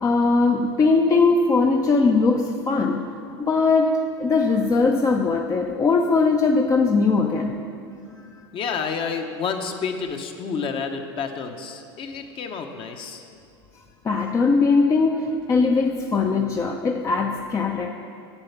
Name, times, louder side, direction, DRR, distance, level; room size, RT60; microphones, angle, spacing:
voice 1, 0.0-3.1 3.4-7.5 14.0-17.9, left 4 dB, 25° left, 3 dB, 0.5 m, -20 dB
voice 2, 8.5-13.3, left 5 dB, 40° left, 5 dB, 1.0 m, -29 dB
8.7 x 7.1 x 5.8 m, 2.4 s
hypercardioid pair, 95°, 13 cm